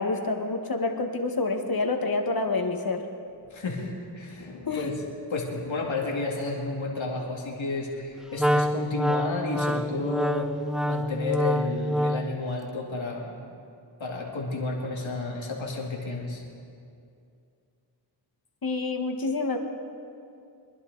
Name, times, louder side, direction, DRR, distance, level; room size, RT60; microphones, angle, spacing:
voice 1, 0.0-3.0 4.7-4.9 18.6-19.6, left 3 dB, 50° left, 4 dB, 1.6 m, -27 dB
voice 2, 3.5-4.9 5.3-10.5 10.8-13.4 14.0-16.4, left 3 dB, 85° left, -1 dB, 2.3 m, -31 dB
Wind instrument woodwind instrument, 8.4-12.4, equal, ahead, 0.4 m, -26 dB
24.5 x 11.0 x 4.0 m, 2.5 s
cardioid pair, 45°, 46 cm